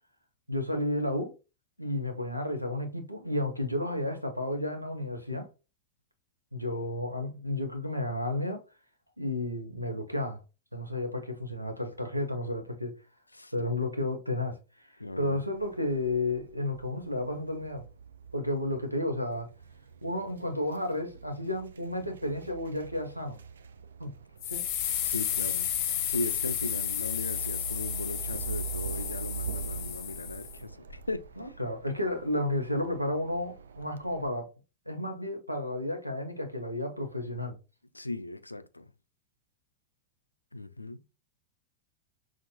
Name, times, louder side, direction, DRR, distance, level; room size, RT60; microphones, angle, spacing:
voice 1, 0.5-1.3 1.8-5.5 6.5-8.6 9.2-10.4 10.7-13.0 13.5-17.8 18.3-19.5 20.0-23.4 24.0-24.1 24.4-24.6 31.4-34.5 34.9-37.6, left 1 dB, 90° right, 0.8 m, -32 dB
voice 2, 13.3-13.7 15.0-15.4 25.0-25.7 26.1-31.5 37.9-38.9 40.5-41.0, left 2 dB, 85° left, 0.3 m, -38 dB
sound 1, 15.5-34.3, right 6 dB, 70° right, 0.4 m, -43 dB
sound 2, 24.4-30.6, left 10 dB, 45° left, 0.7 m, -32 dB
5.8 x 2.5 x 2.8 m
figure-of-eight pair, 90°, 0 cm